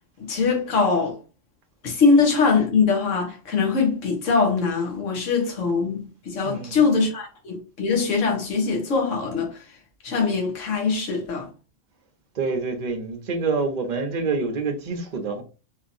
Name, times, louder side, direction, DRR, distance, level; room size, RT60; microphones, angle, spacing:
voice 1, 0.2-1.2 1.8-9.6 10.0-11.5, left 4 dB, 80° left, 1.4 m, -22 dB
voice 2, 6.3-7.0 12.3-15.4, right 4 dB, 45° right, 0.8 m, -27 dB
3.6 x 2.8 x 2.6 m
omnidirectional pair, 1.3 m